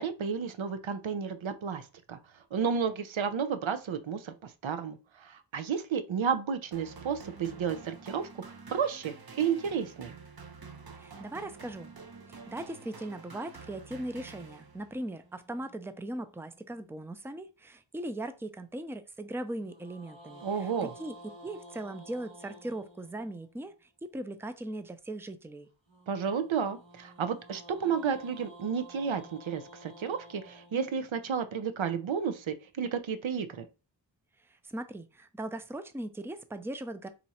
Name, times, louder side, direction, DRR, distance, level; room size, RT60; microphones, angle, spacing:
voice 1, 0.0-2.2 2.5-8.4 8.7-10.1 20.4-20.9 26.1-33.7, right 7 dB, 90° right, 0.6 m, -32 dB
sound 1, 6.7-15.0, right 4 dB, 50° right, 0.9 m, -48 dB
voice 2, 11.0-11.9 12.3-21.1 21.4-23.7 24.1-25.7 34.6-37.1, right 1 dB, 5° right, 0.5 m, -39 dB
sound 2, 14.9-17.3 19.6-23.7 25.9-32.1, right 1 dB, 70° right, 2.1 m, -53 dB
4.3 x 2.5 x 4.1 m
wide cardioid pair, 55°, 46 cm